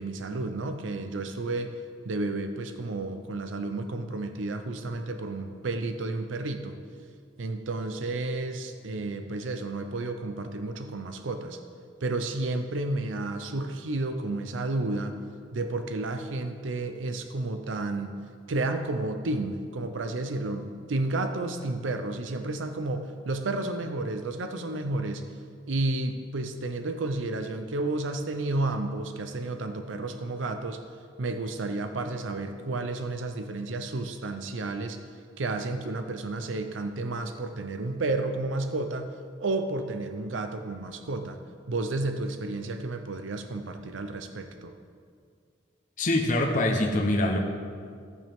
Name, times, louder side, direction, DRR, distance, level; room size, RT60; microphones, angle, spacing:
voice 1, 0.0-1.7 2.0-6.8 7.4-11.6 12.0-15.2 15.5-18.2 18.5-25.2 25.7-30.8 31.2-35.0 35.4-39.1 39.4-41.4 41.7-44.7, right 2 dB, 85° right, 7 dB, 0.6 m, -31 dB
voice 2, 46.0-47.4, left 1 dB, 45° left, 1 dB, 0.9 m, -24 dB
14.0 x 8.8 x 3.5 m, 2.2 s
head